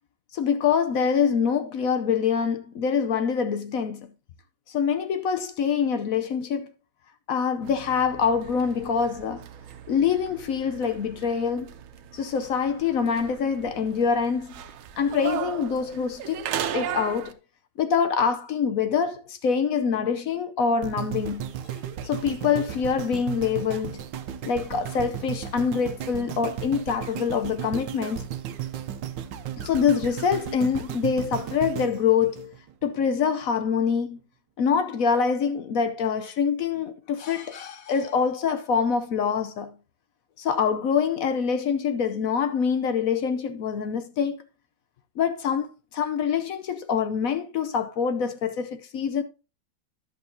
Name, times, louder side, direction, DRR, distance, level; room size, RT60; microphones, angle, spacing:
voice 1, 0.3-4.1 4.7-6.7 7.3-9.4 9.9-11.7 12.1-14.5 15.0-16.5 16.7-17.3 17.8-24.0 24.4-28.2 29.6-32.5 32.8-34.2 34.6-39.8 40.4-44.4 45.2-49.2, left 6 dB, 65° left, 0.8 m, -25 dB
sound 1, 7.6-17.3, right 9 dB, 80° right, 1.6 m, -37 dB
sound 2, 20.8-33.0 33.6-33.7, right 9 dB, 65° right, 1.3 m, -35 dB
11.0 x 7.6 x 2.7 m
omnidirectional pair, 2.3 m